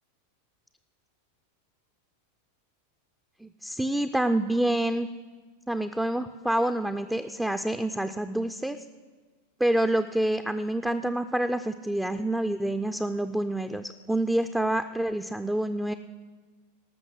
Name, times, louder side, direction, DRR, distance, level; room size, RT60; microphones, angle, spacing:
voice 1, 3.4-5.1 5.7-8.8 9.6-16.0, right 1 dB, 5° right, 8 dB, 0.4 m, -27 dB
18.5 x 6.4 x 6.2 m, 1.4 s
figure-of-eight pair, 90°, 0 cm